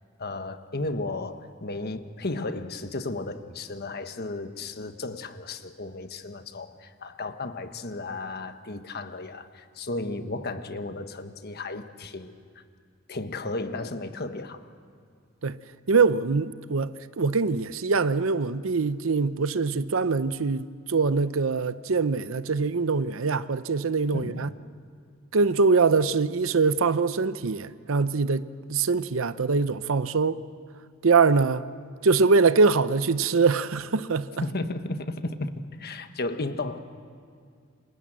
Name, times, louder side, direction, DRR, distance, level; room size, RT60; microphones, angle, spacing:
voice 1, 0.2-12.6 13.1-14.7 24.1-24.5 34.4-36.8, left 2 dB, 50° left, 1.3 m, -34 dB
voice 2, 15.9-24.5 25.3-30.4 31.0-31.7 32.0-34.3, right 4 dB, 70° right, 0.7 m, -23 dB
28.5 x 27.0 x 7.6 m
head